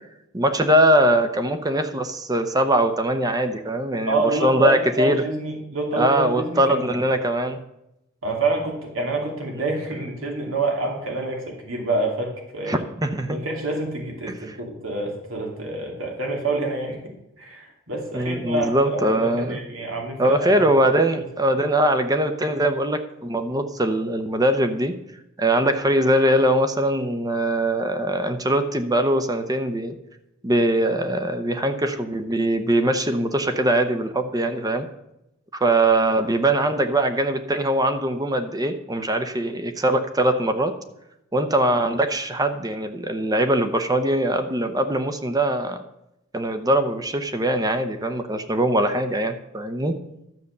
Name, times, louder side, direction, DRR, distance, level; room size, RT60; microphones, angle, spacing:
voice 1, 0.3-5.2 6.0-7.6 12.7-13.4 14.3-14.6 18.1-19.6 20.2-24.9 25.4-29.9 30.4-34.9 35.5-40.7 41.3-45.8 46.3-50.0, right 1 dB, 20° right, 8 dB, 0.8 m, -22 dB
voice 2, 4.1-6.8 8.2-12.8 13.3-17.0 17.4-20.5, right 2 dB, 85° right, 1 dB, 2.4 m, -27 dB
12.0 x 7.0 x 6.6 m, 0.87 s
head